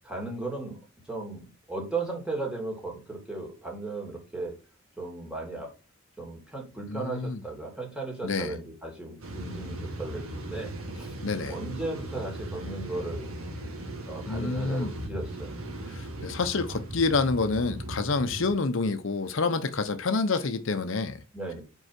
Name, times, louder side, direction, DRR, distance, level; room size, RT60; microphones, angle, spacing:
voice 1, 0.0-0.8 1.1-1.4 1.7-4.5 5.0-5.7 6.2-11.2 11.5-13.3 14.1-15.5 21.3-21.6, right 3 dB, 5° right, 2.7 m, -36 dB
voice 2, 6.9-7.4 8.2-8.6 11.2-11.6 14.3-14.9 15.9-21.2, left 4 dB, 65° left, 0.7 m, -28 dB
sound 1, 9.2-18.5, right 1 dB, 85° right, 2.0 m, -38 dB
5.4 x 4.7 x 5.9 m
head